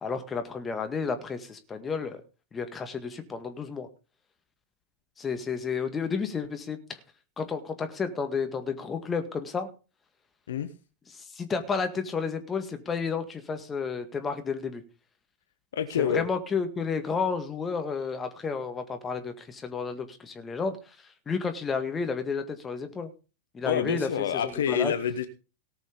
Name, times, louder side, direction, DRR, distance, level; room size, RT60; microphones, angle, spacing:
voice 1, 0.0-2.2 2.5-3.9 5.2-7.0 7.4-9.7 11.1-14.8 16.0-21.0 21.3-23.1 23.5-24.9, left 5 dB, 20° left, 1.9 m, -31 dB
voice 2, 15.7-16.3 23.7-25.3, left 8 dB, 65° left, 1.0 m, -27 dB
18.0 x 6.2 x 5.2 m
figure-of-eight pair, 90°, 0 cm